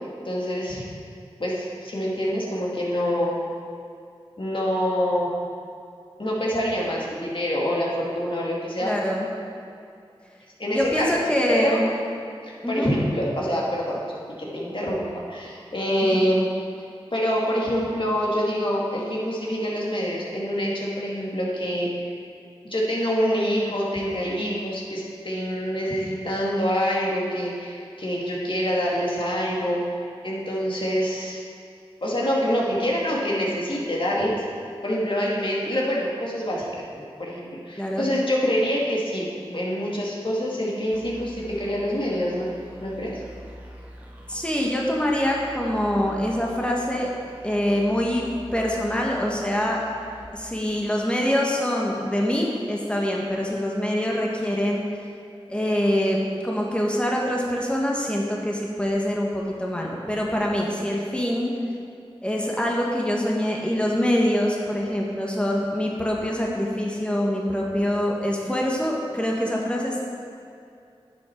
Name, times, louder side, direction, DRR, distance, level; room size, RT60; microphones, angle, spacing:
voice 1, 0.2-1.0 1.4-3.4 4.4-5.3 6.2-8.9 10.6-11.2 11.5-11.8 12.4-14.0 14.4-16.5 17.1-22.1 22.6-31.4 32.0-34.4 34.8-42.5 42.8-43.2, equal, 55° left, -4 dB, 2.3 m, -26 dB
voice 2, 8.8-9.3 10.7-11.8 12.6-12.9 16.0-16.1 37.8-38.1 44.3-47.1 47.4-48.3 48.5-49.8 50.3-54.8 55.5-61.5 62.2-70.0, equal, 10° left, -2 dB, 1.6 m, -24 dB
sound 1, 40.9-51.2, equal, 15° right, 1.7 m, -45 dB
10.5 x 7.4 x 4.6 m, 2.4 s
wide cardioid pair, 40°, 10 cm